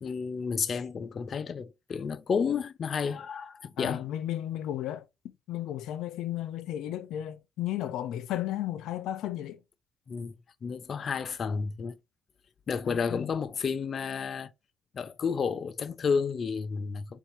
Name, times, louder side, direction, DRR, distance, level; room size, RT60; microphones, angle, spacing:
voice 1, 0.0-4.0 10.1-10.3 10.6-12.0 12.7-14.5 14.9-17.2, left 6 dB, 40° left, 0.5 m, -31 dB
voice 2, 3.8-5.1 5.5-9.6 12.9-13.3, left 12 dB, 80° left, 0.6 m, -34 dB
3.9 x 2.8 x 4.6 m
cardioid pair, 115°, 0 cm